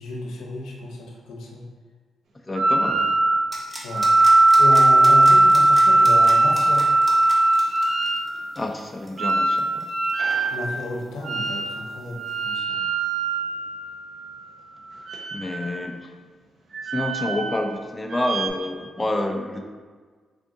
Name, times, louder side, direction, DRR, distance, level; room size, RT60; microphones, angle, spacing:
voice 1, 0.0-1.6 3.8-4.1 4.6-6.9 10.5-12.8, left 2 dB, 90° left, -1 dB, 0.6 m, -32 dB
voice 2, 2.5-3.1 8.6-9.9 15.3-16.1 16.9-19.6, left 1 dB, 20° left, 3 dB, 0.4 m, -28 dB
sound 1, 2.6-3.5 3.9-8.3 9.2-10.6 11.2-11.8 12.1-14.4 15.0-15.8 16.7-17.7 18.1-18.5, right 2 dB, 70° right, 0.6 m, -19 dB
sound 2, 3.5-11.0 11.3-11.4, equal, 15° right, 0.8 m, -39 dB
3.6 x 2.5 x 3.6 m, 1.5 s
cardioid pair, 70°, 0 cm